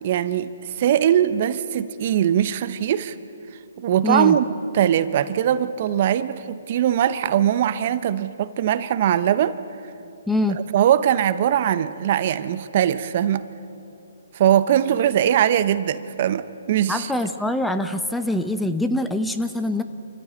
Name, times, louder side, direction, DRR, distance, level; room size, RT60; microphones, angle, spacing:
voice 1, 0.0-3.1 3.8-4.5 4.7-9.6 10.7-13.4 14.3-17.1, right 10 dB, 45° right, 14 dB, 0.8 m, -21 dB
voice 2, 4.0-4.4 10.3-10.6 16.9-19.8, left 1 dB, 5° left, 9 dB, 0.7 m, -24 dB
26.5 x 14.5 x 8.9 m, 2.8 s
hypercardioid pair, 140°, 0 cm